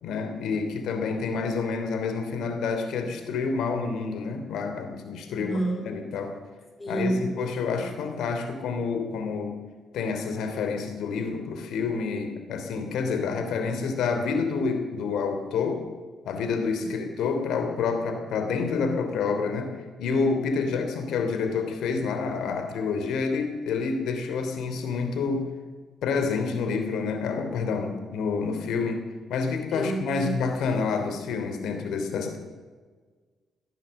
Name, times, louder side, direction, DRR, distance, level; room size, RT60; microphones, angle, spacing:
voice 1, 0.0-6.3 6.9-9.5 9.9-15.8 16.2-19.7 20.0-25.5 26.0-29.0 29.3-32.4, left 5 dB, 80° left, 6 dB, 3.1 m, -28 dB
voice 2, 5.3-5.9 6.8-7.3 7.7-7.9 29.7-30.4, right 1 dB, 15° left, 3 dB, 4.2 m, -29 dB
16.5 x 11.0 x 7.8 m, 1.5 s
cardioid pair, 90°, 0 cm